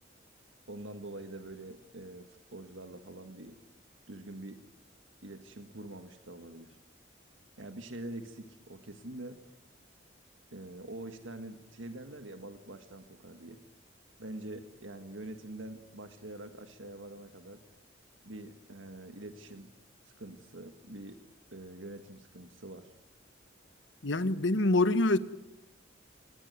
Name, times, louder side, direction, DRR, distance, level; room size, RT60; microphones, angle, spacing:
voice 1, 0.7-3.6 4.1-4.6 5.2-6.8 7.6-9.4 10.5-13.6 14.2-17.6 18.2-19.7 20.0-21.2 21.5-22.9, right 1 dB, 85° right, 7 dB, 1.8 m, -45 dB
voice 2, 24.0-25.2, left 2 dB, 75° left, 12 dB, 1.3 m, -25 dB
26.5 x 19.0 x 9.5 m, 0.84 s
head